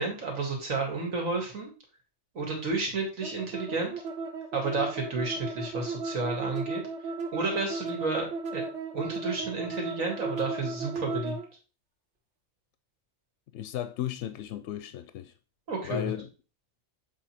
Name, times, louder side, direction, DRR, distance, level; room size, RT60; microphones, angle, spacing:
voice 1, 0.0-1.7 2.3-4.0 4.5-6.8 7.3-8.6 8.9-11.4 15.7-16.1, right 3 dB, 85° right, 2.4 m, -31 dB
sound 1, 3.2-11.5, right 4 dB, 60° right, 1.3 m, -35 dB
voice 2, 13.5-15.3 15.8-16.3, left 11 dB, 70° left, 0.8 m, -35 dB
7.3 x 3.8 x 4.3 m
omnidirectional pair, 1.4 m